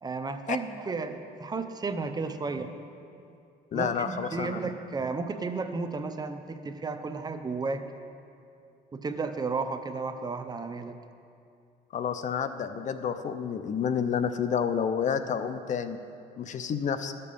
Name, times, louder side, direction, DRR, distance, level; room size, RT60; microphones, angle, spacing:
voice 1, 0.0-2.7 3.7-7.8 8.9-11.0, right 4 dB, 25° right, 8 dB, 0.6 m, -33 dB
voice 2, 3.7-4.7 11.9-16.0 16.4-17.1, left 7 dB, 45° left, 10 dB, 0.5 m, -29 dB
13.5 x 6.7 x 5.3 m, 2.5 s
cardioid pair, 110°, 17 cm